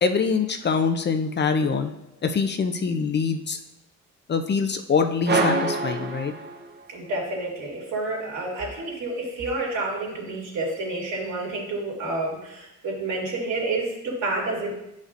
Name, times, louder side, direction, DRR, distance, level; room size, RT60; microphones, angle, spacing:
voice 1, 0.0-1.9 2.2-3.6 4.3-6.3, left 5 dB, 35° left, 7 dB, 0.5 m, -24 dB
sound 1, 5.3-7.0, right 3 dB, 35° right, 0.8 m, -26 dB
voice 2, 6.9-14.7, right 2 dB, 70° right, -4 dB, 2.5 m, -29 dB
9.4 x 5.2 x 2.5 m, 0.86 s
cardioid pair, 90°, 30 cm